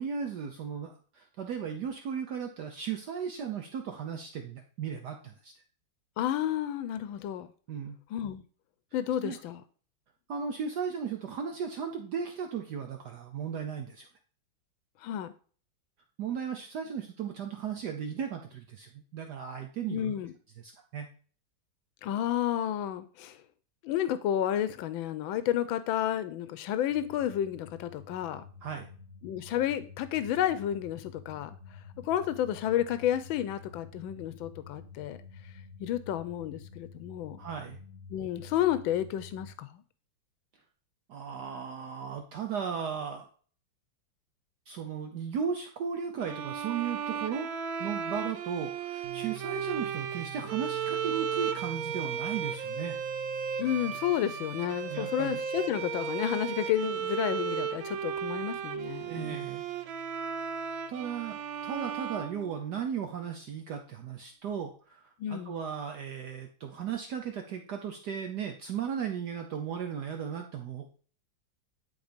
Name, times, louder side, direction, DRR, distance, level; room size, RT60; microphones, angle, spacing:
voice 1, 0.0-5.5 7.7-8.0 9.2-9.4 10.3-14.1 16.2-20.2 20.6-21.1 28.6-28.9 37.4-37.8 41.1-43.3 44.7-47.5 47.8-53.0 54.9-55.4 59.1-59.6 60.9-70.9, right 7 dB, 65° right, 1.3 m, -36 dB
voice 2, 6.2-7.5 8.1-8.4 8.9-9.6 15.0-15.3 19.9-20.3 22.0-23.4 23.8-28.4 29.2-31.6 32.0-35.2 35.8-37.4 38.1-39.8 53.6-59.5 65.2-65.6, left 11 dB, 90° left, 1.4 m, -31 dB
sound 1, 26.9-39.6, left 5 dB, 65° left, 1.8 m, -50 dB
sound 2, 46.2-63.0, right 7 dB, 85° right, 1.6 m, -35 dB
sound 3, 49.0-62.7, right 9 dB, 40° right, 1.4 m, -51 dB
11.0 x 3.9 x 5.1 m
omnidirectional pair, 2.1 m